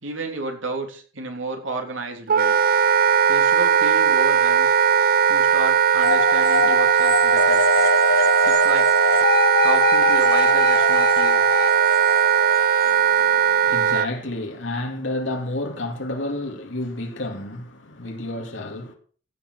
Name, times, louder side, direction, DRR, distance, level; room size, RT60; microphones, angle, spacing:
voice 1, 0.0-2.5 3.3-4.7 5.3-7.6 8.4-9.1 9.6-11.4, right 2 dB, 85° right, 3.2 m, -31 dB
Wind instrument woodwind instrument, 2.3-14.1, right 8 dB, 50° right, 0.5 m, -18 dB
sound 1, 6.0-13.5, left 5 dB, 50° left, 0.6 m, -24 dB
voice 2, 12.8-18.9, left 1 dB, 80° left, 2.3 m, -30 dB
15.0 x 6.6 x 6.3 m
head